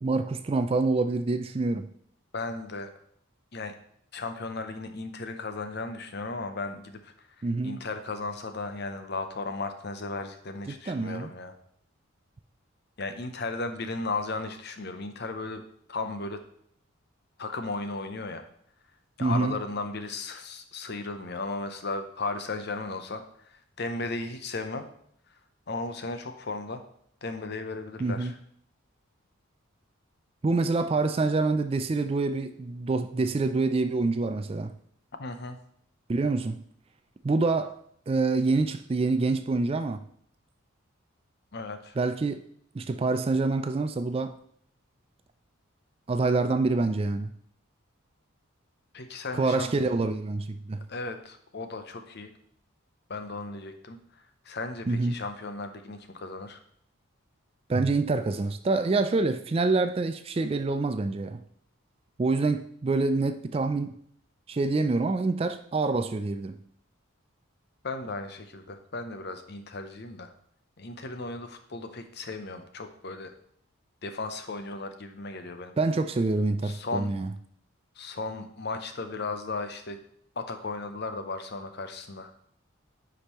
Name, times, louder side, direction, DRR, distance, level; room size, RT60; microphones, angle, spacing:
voice 1, 0.0-1.9 7.4-7.8 10.7-11.3 19.2-19.5 28.0-28.3 30.4-34.7 36.1-36.6 37.2-37.8 38.1-40.0 42.0-42.4 42.7-44.3 46.1-47.3 49.3-50.8 54.9-55.2 57.7-61.4 62.2-63.9 64.5-66.6 75.8-77.3, right 3 dB, 25° right, 0.3 m, -26 dB
voice 2, 2.3-2.9 3.5-3.8 4.1-7.3 7.6-11.5 13.0-15.6 15.9-16.4 17.4-18.4 19.2-24.8 25.7-26.8 27.2-28.4 35.2-35.6 41.5-42.0 48.9-49.7 50.9-52.3 53.1-56.6 67.8-70.3 70.8-73.3 74.0-75.7 76.6-77.1 78.0-80.0 80.4-82.3, left 3 dB, 50° left, 0.7 m, -35 dB
9.7 x 5.1 x 3.0 m
head